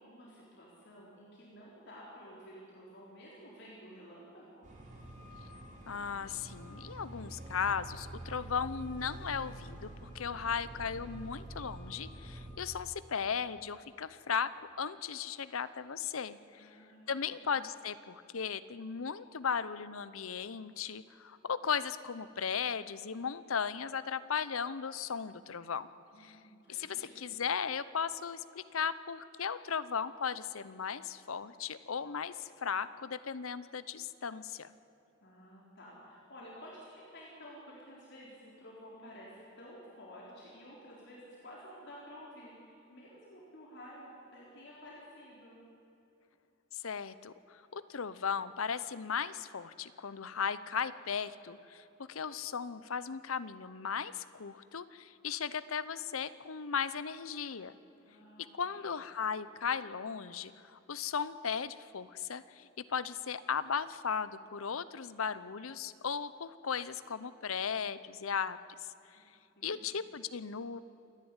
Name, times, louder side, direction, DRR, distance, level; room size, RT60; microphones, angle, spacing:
voice 1, 0.0-4.7 16.6-17.5 26.1-27.4 35.2-45.6 58.0-58.9 69.6-70.0, equal, 55° left, -5 dB, 3.9 m, -52 dB
sound 1, 4.6-12.5, right 1 dB, 35° right, 3.4 m, -47 dB
voice 2, 5.9-14.5 14.8-16.7 17.1-25.9 26.2-26.4 26.7-34.7 46.7-57.7 58.5-68.6 69.1-69.2 69.6-70.8, left 6 dB, 90° left, 15 dB, 0.8 m, -36 dB
28.0 x 10.5 x 9.8 m, 2.8 s
head